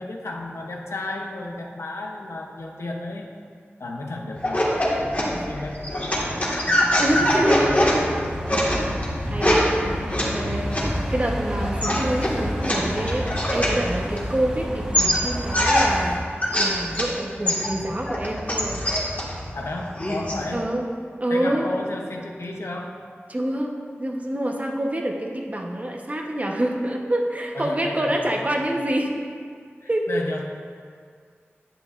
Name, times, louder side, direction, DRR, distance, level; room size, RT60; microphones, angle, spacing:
voice 1, 0.0-3.3 3.8-6.2 7.1-7.8 19.5-20.7 21.3-23.0 27.5-28.6 29.8-30.4, left 2 dB, 85° left, 1 dB, 0.8 m, -33 dB
sound 1, 4.4-14.6 14.9-17.1 17.5-20.4, equal, 35° left, 1.6 m, -24 dB
sound 2, 7.0-16.2, equal, 15° right, 1.2 m, -32 dB
voice 2, 7.0-7.9 8.2-10.7 11.1-18.8 20.5-20.9 21.2-21.7 23.3-29.1 29.9-30.1, right 1 dB, 35° right, 0 dB, 0.9 m, -27 dB
10.0 x 7.8 x 2.5 m, 2.1 s
wide cardioid pair, 60°, 4 cm